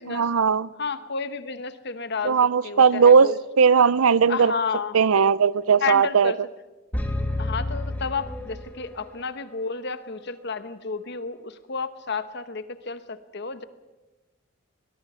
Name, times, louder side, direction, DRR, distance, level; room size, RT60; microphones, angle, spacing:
voice 1, 0.1-0.7 2.2-3.3 3.6-4.5 4.9-6.3, right 6 dB, 80° right, 0.6 m, -18 dB
voice 2, 0.8-2.4 2.6-3.4 4.3-5.0 5.8-6.4 7.4-13.6, left 5 dB, 50° left, 1.1 m, -31 dB
sound 1, 6.9-9.0, left 1 dB, 10° left, 1.9 m, -29 dB
23.0 x 21.0 x 5.7 m
head